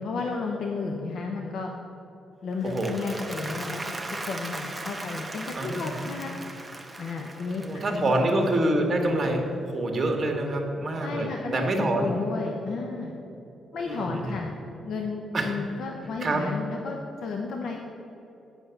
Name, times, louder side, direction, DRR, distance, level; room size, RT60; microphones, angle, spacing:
voice 1, 0.0-1.7 2.4-3.8 4.2-6.3 7.0-8.2 11.0-13.1 13.7-17.8, left 4 dB, 70° left, 1 dB, 0.8 m, -33 dB
Applause, 2.5-8.8, right 2 dB, 15° right, 0.9 m, -38 dB
voice 2, 5.6-5.9 7.6-12.1 13.8-14.4 15.3-15.5 16.2-16.4, right 1 dB, 35° right, 2 dB, 1.5 m, -26 dB
7.9 x 6.0 x 6.9 m, 2.9 s
cardioid pair, 100°, 0 cm